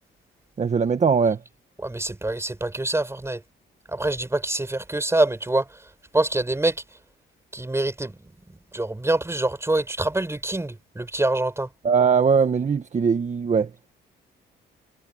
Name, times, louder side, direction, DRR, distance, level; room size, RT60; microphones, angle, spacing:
voice 1, 0.6-1.4 11.8-13.7, right 6 dB, 35° right, 1.5 m, -20 dB
voice 2, 1.8-3.4 3.9-5.8 6.1-6.8 7.5-8.2 8.5-11.7, right 2 dB, 15° right, 5.4 m, -25 dB
cardioid pair, 90°, 20 cm